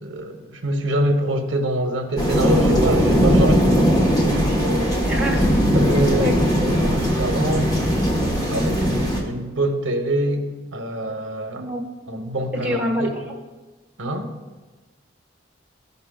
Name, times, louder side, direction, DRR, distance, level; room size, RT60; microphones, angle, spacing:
voice 1, 0.0-3.7 4.2-5.0 5.7-7.7 8.5-11.7 12.1-13.2 14.0-14.3, right 1 dB, 70° right, 5 dB, 0.9 m, -25 dB
sound 1, 2.2-9.2, equal, 20° left, 1.1 m, -19 dB
voice 2, 4.8-5.5 6.2-6.4 6.6-6.7 11.6-11.8 12.6-13.2, equal, 10° right, -3 dB, 1.3 m, -26 dB
14.0 x 5.4 x 2.3 m, 1.2 s
head